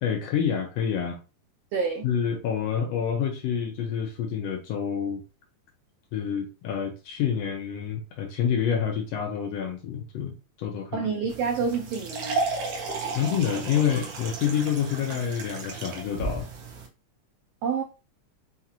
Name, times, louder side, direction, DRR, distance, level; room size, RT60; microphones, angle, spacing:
voice 1, 0.0-1.2 2.0-5.2 6.1-11.1 13.1-16.5, left 8 dB, 75° left, 1.6 m, -28 dB
voice 2, 1.7-2.1 10.9-12.4 17.6-17.8, right 5 dB, 85° right, 1.4 m, -28 dB
sound 1, 11.3-16.9, right 3 dB, 70° right, 1.5 m, -33 dB
5.6 x 2.4 x 2.8 m
omnidirectional pair, 3.4 m